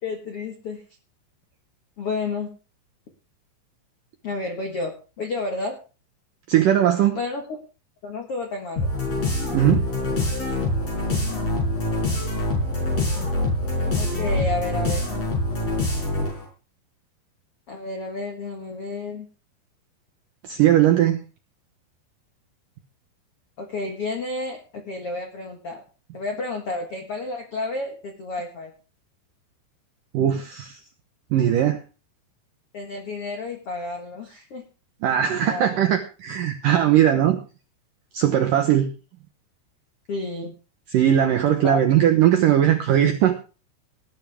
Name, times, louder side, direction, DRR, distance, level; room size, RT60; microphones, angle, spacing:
voice 1, 0.0-0.8 2.0-2.5 4.2-5.8 7.1-7.6 8.0-8.9 14.0-15.1 17.7-19.3 23.6-25.8 26.1-28.7 32.7-34.6 35.4-35.8 40.1-40.5 41.6-41.8, left 3 dB, 75° left, 3 dB, 1.3 m, -31 dB
voice 2, 6.5-7.2 9.5-9.9 20.4-21.2 30.1-30.8 31.3-31.8 35.0-37.4 38.1-38.9 40.9-43.3, right 11 dB, 80° right, 5 dB, 1.9 m, -19 dB
sound 1, 8.8-16.4, left 1 dB, 35° left, 6.6 m, -25 dB
19.0 x 10.5 x 3.5 m, 0.34 s
omnidirectional pair, 5.3 m